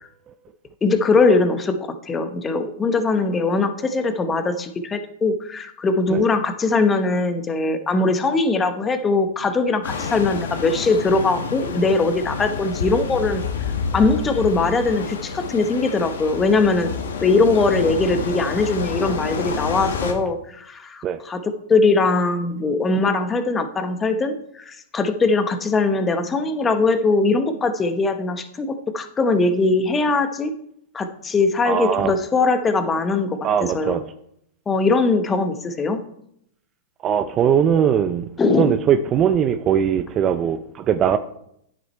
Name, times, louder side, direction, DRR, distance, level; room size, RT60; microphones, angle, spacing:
voice 1, 0.8-13.4 13.9-16.9 17.2-21.4 21.7-30.5 30.9-34.0 34.7-36.0 38.4-38.8, left 3 dB, 20° left, 1.0 m, -21 dB
sound 1, 9.8-20.1, left 5 dB, 80° left, 1.4 m, -28 dB
voice 2, 31.6-32.1 33.4-34.0 37.0-38.3 38.6-41.2, right 8 dB, 30° right, 0.5 m, -20 dB
9.8 x 6.7 x 4.4 m
hypercardioid pair, 120°, 0 cm